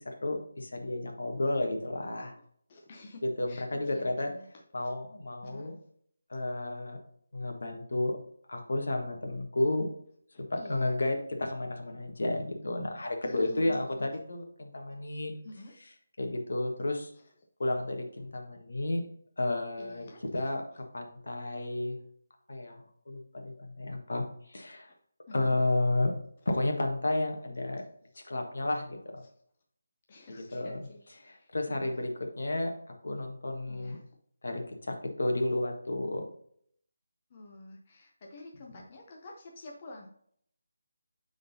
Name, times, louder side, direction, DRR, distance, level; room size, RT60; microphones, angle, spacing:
voice 1, 0.0-2.3 3.2-4.3 4.7-5.7 6.3-7.0 7.3-8.2 8.5-9.9 10.5-15.3 16.2-17.1 17.6-19.1 19.4-20.1 20.3-22.0 22.5-24.2 24.5-24.9 25.3-26.1 26.4-27.8 28.2-29.2 30.3-30.9 31.2-32.7 33.0-34.0 34.4-36.2, left 2 dB, 70° left, 3 dB, 1.3 m, -32 dB
voice 2, 2.7-4.5 4.8-4.9 5.4-5.8 10.3-11.0 13.2-14.1 15.4-15.8 19.8-20.2 24.9-25.0 25.3-25.6 28.1-28.3 30.1-32.0 33.7-34.0 37.3-40.1, left 2 dB, 25° left, 0 dB, 0.5 m, -49 dB
9.3 x 3.9 x 2.7 m, 0.65 s
hypercardioid pair, 180°, 0 cm